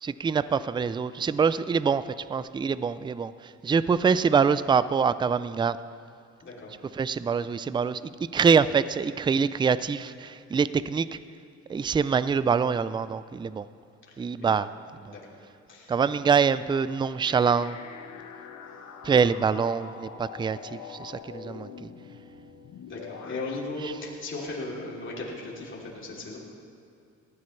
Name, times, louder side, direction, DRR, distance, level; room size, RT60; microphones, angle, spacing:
voice 1, 0.0-5.8 6.9-11.2 11.7-13.7 14.2-14.7 15.9-17.8 19.0-21.9 23.8-23.9, right 6 dB, 15° right, 16 dB, 0.3 m, -25 dB
voice 2, 6.4-6.7 14.4-14.6 15.1-15.4 15.7-15.9 22.9-26.4, left 2 dB, 40° left, -4 dB, 3.0 m, -37 dB
sound 1, 17.2-23.6, left 6 dB, 80° left, 1.1 m, -44 dB
19.5 x 14.5 x 3.2 m, 2.6 s
cardioid pair, 90°, 30 cm